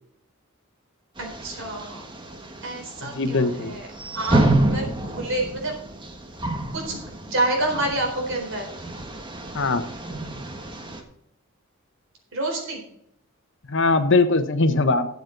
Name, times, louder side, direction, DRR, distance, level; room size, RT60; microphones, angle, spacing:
sound 1, 1.2-11.0, right 1 dB, 20° right, 1.5 m, -29 dB
voice 1, 1.4-2.0 2.6-3.8 4.1-5.7 6.7-7.0 7.3-8.7 12.3-12.8, right 2 dB, 65° right, 1 dB, 4.1 m, -28 dB
voice 2, 3.0-3.7 9.5-9.8 13.7-15.1, left 3 dB, 60° left, 9 dB, 1.1 m, -21 dB
13.0 x 8.2 x 3.9 m, 0.74 s
head